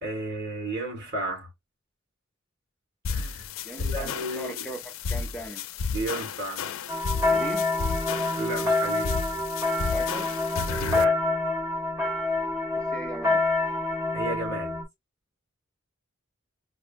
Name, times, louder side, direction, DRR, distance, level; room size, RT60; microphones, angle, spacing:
voice 1, 0.0-1.5 3.1-3.5 3.8-4.7 5.9-6.7 8.4-9.1 10.8-11.2 14.1-14.8, right 2 dB, 55° right, 1.8 m, -33 dB
sound 1, 3.0-11.0, left 5 dB, 85° left, 0.4 m, -32 dB
voice 2, 3.6-5.6 7.2-7.7 9.9-10.3 12.7-13.4, equal, 5° left, 0.5 m, -38 dB
sound 2, 6.9-14.8, left 2 dB, 15° right, 1.1 m, -27 dB
4.7 x 2.1 x 2.4 m
head